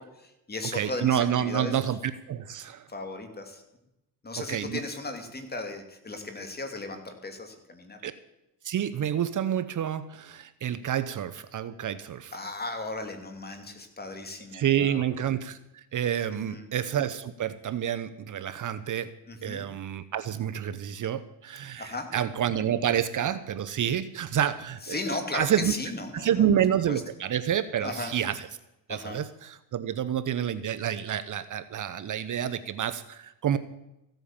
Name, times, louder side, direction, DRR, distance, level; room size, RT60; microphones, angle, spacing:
voice 1, 0.0-1.8 2.9-3.6 4.2-8.0 12.3-15.1 16.3-16.7 19.3-19.7 21.8-22.1 24.9-26.5 26.9-27.0 27.8-28.1 28.9-29.2, left 2 dB, 25° left, 6 dB, 2.7 m, -36 dB
voice 2, 0.7-2.9 4.4-4.8 8.0-8.1 8.6-12.3 14.5-19.1 19.4-25.7 26.1-28.5 28.9-33.6, right 9 dB, 50° right, 13 dB, 0.8 m, -28 dB
15.5 x 9.1 x 7.3 m, 0.91 s
cardioid pair, 100°, 41 cm